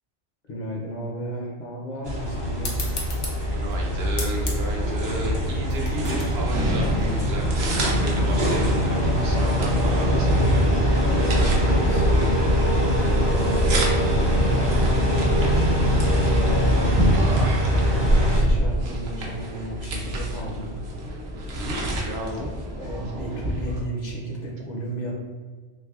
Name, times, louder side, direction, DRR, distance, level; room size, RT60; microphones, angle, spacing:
voice 1, 0.5-2.8 10.1-10.4 10.8-15.8 16.6-16.9 17.9-20.7 22.3-25.2, right 1 dB, 50° left, -2 dB, 0.6 m, -34 dB
sound 1, 2.0-18.4, equal, 35° right, 0.5 m, -22 dB
sound 2, 2.6-7.7, left 3 dB, 90° left, 1.0 m, -37 dB
voice 2, 3.5-10.7 15.2-15.3 17.1-17.7 21.6-22.5, right 1 dB, 65° right, 0 dB, 0.8 m, -34 dB
sound 3, 5.9-23.8, right 1 dB, 90° right, 1.0 m, -30 dB
3.4 x 3.1 x 2.3 m, 1.5 s
omnidirectional pair, 1.2 m